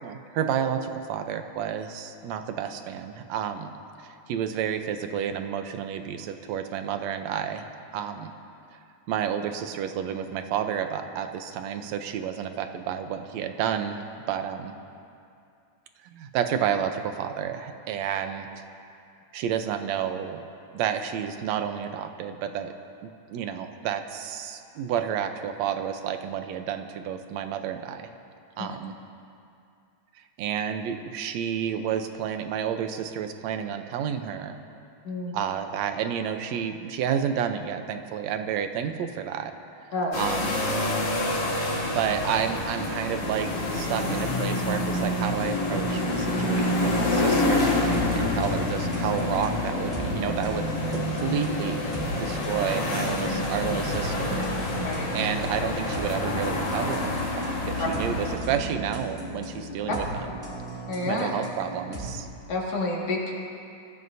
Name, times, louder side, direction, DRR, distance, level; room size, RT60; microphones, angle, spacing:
voice 1, 0.0-3.7 4.0-7.7 7.9-8.3 9.1-14.7 16.0-18.5 19.3-20.4 20.7-22.7 23.0-28.1 28.6-29.0 30.4-34.6 35.3-39.5 40.1-40.6 41.8-51.9 52.2-54.5 55.1-60.4 61.1-62.3, right 8 dB, 75° right, 7 dB, 2.0 m, -30 dB
voice 2, 35.0-35.3 39.9-40.2 54.8-55.3 57.8-57.9 59.9-60.0 60.9-61.3 62.5-63.3, left 2 dB, 60° left, -3 dB, 3.1 m, -29 dB
sound 1, 40.1-58.4, left 2 dB, 75° left, 3.8 m, -27 dB
sound 2, 47.6-62.1, right 2 dB, 10° right, 2.7 m, -36 dB
25.0 x 15.0 x 2.7 m, 2.5 s
omnidirectional pair, 3.3 m